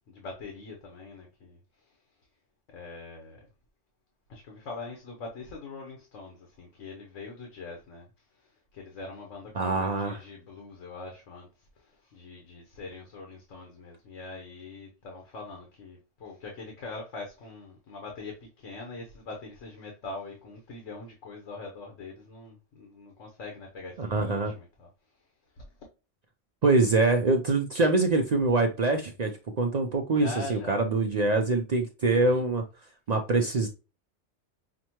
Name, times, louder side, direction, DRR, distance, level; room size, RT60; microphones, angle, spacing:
voice 1, 0.0-1.6 2.7-3.4 4.3-8.1 8.7-11.5 12.1-24.9 25.6-25.7 30.1-30.8 32.1-32.4, left 3 dB, 85° left, 1.3 m, -43 dB
voice 2, 9.5-10.2 24.0-24.5 26.6-32.6 33.1-33.7, right 3 dB, 55° right, 0.4 m, -24 dB
5.9 x 2.2 x 2.9 m
omnidirectional pair, 1.2 m